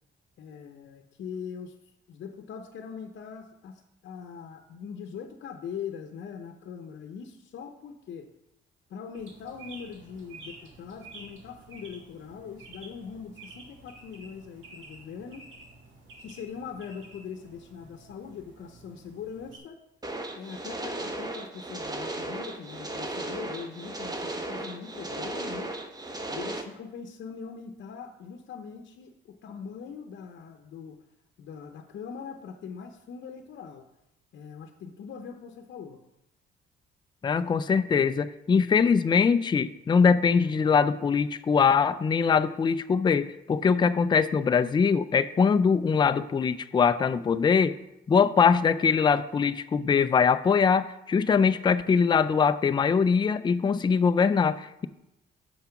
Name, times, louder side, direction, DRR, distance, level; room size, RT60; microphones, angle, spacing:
voice 1, 0.4-1.8 2.1-8.3 8.9-15.4 16.2-19.8 20.4-25.8 26.3-31.0 31.4-33.9 34.3-36.0, left 6 dB, 65° left, 4 dB, 0.8 m, -41 dB
sound 1, 9.1-19.6, right 3 dB, 75° right, 1.8 m, -50 dB
sound 2, 20.0-26.6, right 2 dB, 20° right, 1.0 m, -35 dB
voice 2, 37.2-47.7 48.1-54.9, left 6 dB, 25° left, 12 dB, 0.4 m, -22 dB
7.1 x 5.7 x 5.8 m, 0.87 s
cardioid pair, 90°, 20 cm